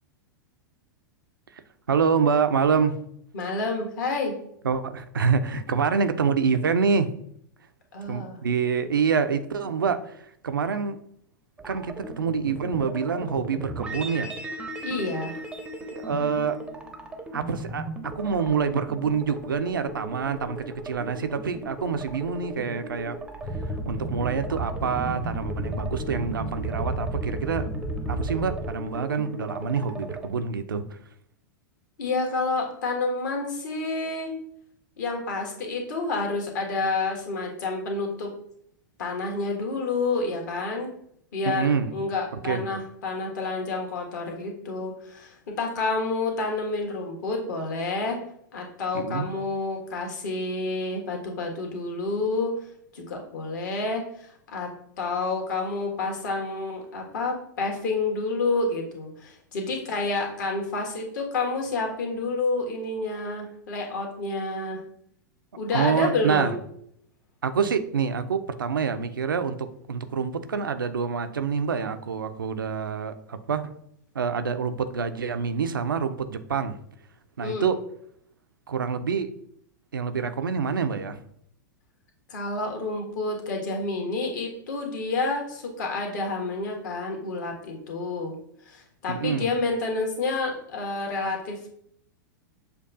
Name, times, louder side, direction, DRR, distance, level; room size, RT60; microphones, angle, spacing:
voice 1, 1.9-2.9 4.6-7.1 8.1-10.2 10.4-11.0 11.6-14.3 15.9-16.6 17.3-17.9 18.2-23.2 23.9-27.7 28.1-30.9 41.4-41.9 42.3-42.7 48.9-49.3 65.7-66.5 67.4-73.7 74.1-76.8 77.4-77.8 78.7-79.3 79.9-81.2 89.1-89.4, right 6 dB, 80° right, 9 dB, 0.4 m, -26 dB
voice 2, 3.3-4.3 7.9-8.4 14.8-15.4 32.0-34.3 35.0-38.3 39.0-40.9 41.3-48.2 48.5-52.7 52.9-54.7 55.0-64.8 65.5-66.6 77.4-77.7 82.3-88.3 88.6-91.7, left 3 dB, 60° left, 1 dB, 1.3 m, -29 dB
sound 1, 11.6-30.3, right 1 dB, 10° right, 0.5 m, -38 dB
sound 2, 23.4-28.7, right 1 dB, 25° left, 0.9 m, -32 dB
6.7 x 2.3 x 2.6 m, 0.69 s
figure-of-eight pair, 100°, 11 cm